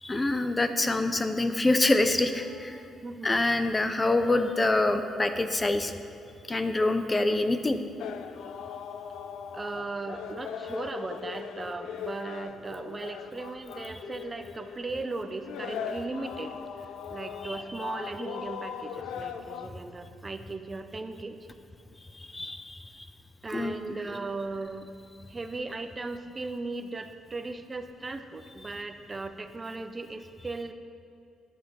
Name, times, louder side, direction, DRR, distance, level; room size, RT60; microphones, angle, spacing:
voice 1, 0.0-2.8 3.2-5.9 6.5-7.8 17.4-17.5 22.2-22.8 23.5-23.7, left 2 dB, 20° left, 9 dB, 0.6 m, -26 dB
voice 2, 3.0-3.4 9.5-21.5 23.4-24.9 25.3-30.7, right 3 dB, 25° right, 8 dB, 0.6 m, -37 dB
sound 1, 8.0-19.7, left 7 dB, 85° left, 0.5 m, -39 dB
11.0 x 7.6 x 5.3 m, 2.5 s
cardioid pair, 90°, 0 cm